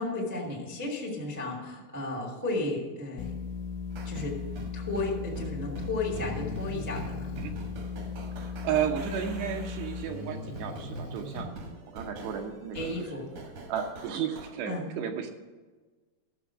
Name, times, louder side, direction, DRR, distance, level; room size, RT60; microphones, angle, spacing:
voice 1, 0.0-3.3 4.0-4.4 4.7-7.3 11.3-11.5 12.7-13.3 14.6-14.8, left 2 dB, 10° right, -2 dB, 0.7 m, -34 dB
sound 1, 3.2-10.0, left 6 dB, 90° left, 3.2 m, -37 dB
sound 2, 3.9-14.5, right 2 dB, 60° right, 1.8 m, -45 dB
Breathing, 6.1-7.6 10.0-11.5, left 1 dB, 70° left, 2.1 m, -40 dB
voice 2, 8.4-11.6 11.9-13.2 13.7-15.3, right 8 dB, 75° right, 5 dB, 2.7 m, -33 dB
13.5 x 7.0 x 5.9 m, 1.3 s
omnidirectional pair, 5.4 m